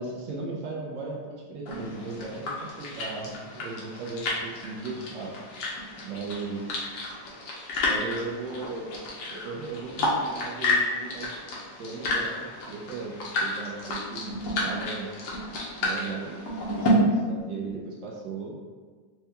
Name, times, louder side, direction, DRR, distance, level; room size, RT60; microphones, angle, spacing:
voice 1, 0.0-5.3 6.0-6.6 7.8-8.9 9.3-11.3 11.8-13.1 13.4-15.1 15.8-18.6, right 4 dB, 75° right, -3 dB, 0.7 m, -37 dB
sound 1, 1.7-16.9, left 2 dB, 75° left, 1.4 m, -31 dB
4.5 x 2.2 x 2.8 m, 1.5 s
omnidirectional pair, 1.9 m